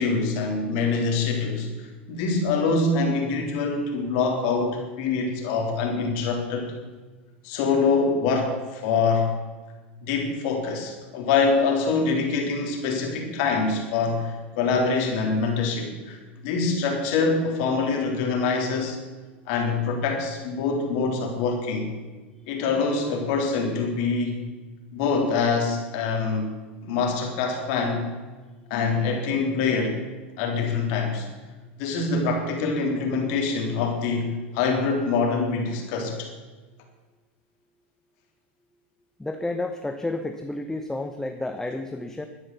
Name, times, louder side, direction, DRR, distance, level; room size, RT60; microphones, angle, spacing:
voice 1, 0.0-6.7 7.4-9.3 10.0-16.2 16.4-19.0 19.5-22.0 22.5-24.4 24.9-28.0 28.7-30.0 30.4-31.3 31.8-36.3, left 4 dB, 60° left, 2 dB, 3.5 m, -25 dB
voice 2, 39.2-42.3, left 2 dB, 5° left, 7 dB, 1.0 m, -31 dB
13.0 x 9.9 x 6.9 m, 1.3 s
hypercardioid pair, 95°, 6 cm